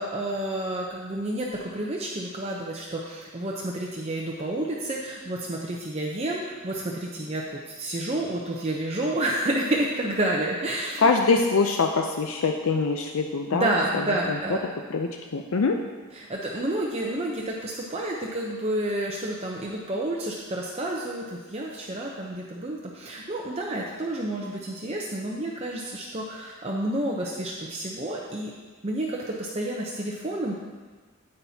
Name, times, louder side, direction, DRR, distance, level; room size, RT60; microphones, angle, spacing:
voice 1, 0.0-11.1 13.5-14.6 16.1-28.5 28.8-30.5, right 1 dB, 30° right, -2 dB, 0.7 m, -30 dB
voice 2, 11.0-13.7 14.3-14.4 14.9-15.8, left 4 dB, 70° left, 3 dB, 0.5 m, -23 dB
9.9 x 8.8 x 2.8 m, 1.4 s
head